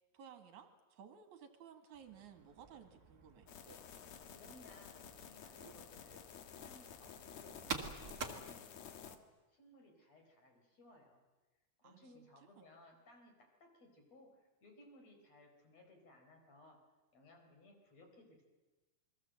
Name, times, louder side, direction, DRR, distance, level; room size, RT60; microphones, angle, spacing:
voice 1, 0.0-3.5 11.8-12.6, right 8 dB, 55° right, 7 dB, 2.8 m, -57 dB
sound 1, 1.9-8.3, right 5 dB, 35° right, 1.6 m, -49 dB
sound 2, 3.5-9.2, left 8 dB, 60° left, 1.9 m, -53 dB
voice 2, 4.3-9.2 9.5-11.2 11.8-16.8 17.1-18.4, left 1 dB, 40° left, 3 dB, 5.3 m, -62 dB
28.0 x 22.0 x 7.7 m, 1.2 s
omnidirectional pair, 4.7 m